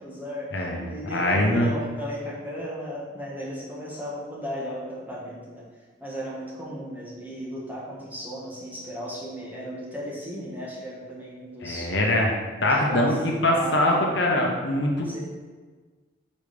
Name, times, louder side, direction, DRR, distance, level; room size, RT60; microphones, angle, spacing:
voice 1, 0.0-5.6 6.0-11.9 12.6-13.2 13.5-14.1 15.0-15.2, equal, 10° right, -6 dB, 1.6 m, -36 dB
voice 2, 1.1-1.7 11.6-12.4 12.6-15.2, left 1 dB, 65° left, -1 dB, 1.0 m, -23 dB
5.3 x 5.1 x 5.2 m, 1.4 s
head